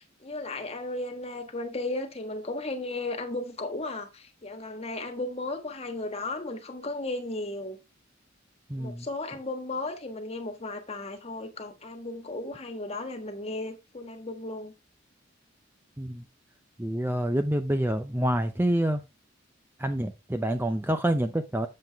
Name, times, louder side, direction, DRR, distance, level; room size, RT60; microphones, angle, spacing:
voice 1, 0.0-7.8 8.7-14.7, left 2 dB, 30° left, 1.5 m, -35 dB
voice 2, 8.7-9.1 16.0-16.2 16.8-19.0 19.8-21.7, right 1 dB, 10° right, 0.6 m, -27 dB
7.6 x 7.3 x 3.5 m
head